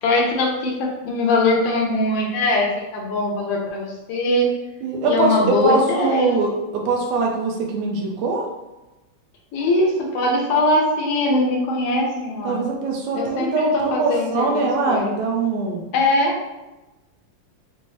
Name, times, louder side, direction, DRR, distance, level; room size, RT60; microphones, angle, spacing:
voice 1, 0.0-4.5 5.0-6.4 9.5-12.6 13.1-15.1 15.9-16.4, left 2 dB, 75° left, -1 dB, 1.4 m, -21 dB
voice 2, 4.8-8.5 12.4-15.8, right 3 dB, 75° right, 0 dB, 2.0 m, -22 dB
5.8 x 2.1 x 3.1 m, 1.0 s
omnidirectional pair, 3.5 m